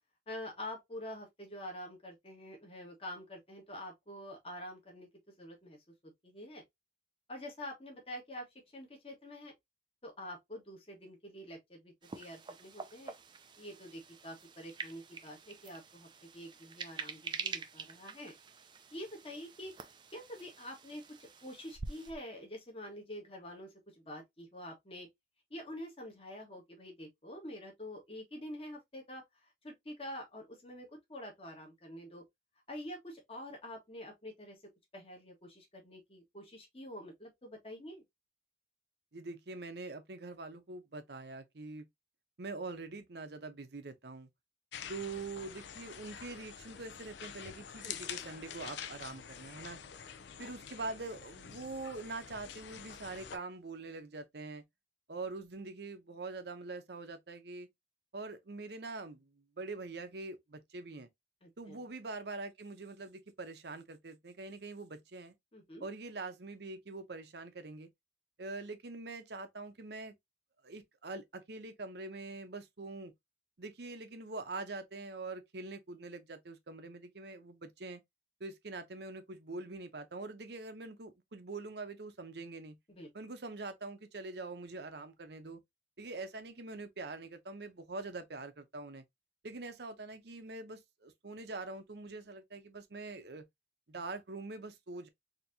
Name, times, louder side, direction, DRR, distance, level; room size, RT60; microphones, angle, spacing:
voice 1, 0.3-5.1 5.4-5.8 6.0-6.6 7.3-8.5 8.7-9.5 10.0-13.1 13.6-18.4 18.9-19.7 20.1-23.7 24.0-25.1 25.5-32.2 32.7-34.6 34.9-38.0 47.8-48.0 61.4-61.8 65.5-65.8 82.9-83.1, left 1 dB, 30° left, 1.4 m, -47 dB
sound 1, 12.0-22.2, right 4 dB, 25° right, 0.4 m, -46 dB
voice 2, 39.1-41.9 42.4-44.3 44.9-49.8 50.4-54.6 55.1-57.7 58.1-61.1 61.6-65.4 65.8-67.9 68.4-70.1 70.6-73.1 73.6-78.0 78.4-82.8 83.1-85.6 86.0-89.0 89.4-93.4 93.9-95.1, right 3 dB, 65° right, 0.8 m, -44 dB
sound 2, 44.7-53.4, left 8 dB, 75° left, 0.5 m, -47 dB
4.4 x 2.9 x 2.7 m
head